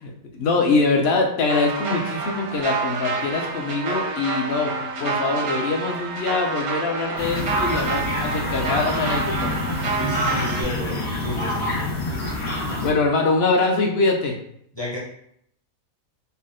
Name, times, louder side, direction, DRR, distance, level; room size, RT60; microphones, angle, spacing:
voice 1, 0.0-9.5 12.6-14.4, left 3 dB, 60° left, 2 dB, 0.7 m, -23 dB
sound 1, 1.5-10.6, right 4 dB, 85° right, 1.2 m, -28 dB
sound 2, 7.2-12.9, left 2 dB, 75° left, 1.6 m, -27 dB
voice 2, 10.0-11.8 14.7-15.0, equal, 25° left, -4 dB, 0.6 m, -31 dB
4.1 x 2.1 x 3.7 m, 0.70 s
omnidirectional pair, 1.5 m